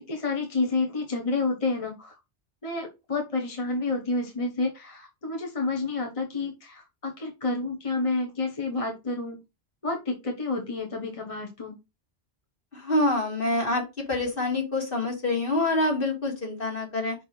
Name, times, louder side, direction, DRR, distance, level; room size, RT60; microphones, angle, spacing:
voice 1, 0.1-2.2 2.6-9.4 9.8-11.7, left 3 dB, 30° left, 2 dB, 1.2 m, -29 dB
voice 2, 12.7-17.2, left 2 dB, 50° left, 1 dB, 2.3 m, -26 dB
5.6 x 4.6 x 4.5 m, 0.25 s
omnidirectional pair, 1.2 m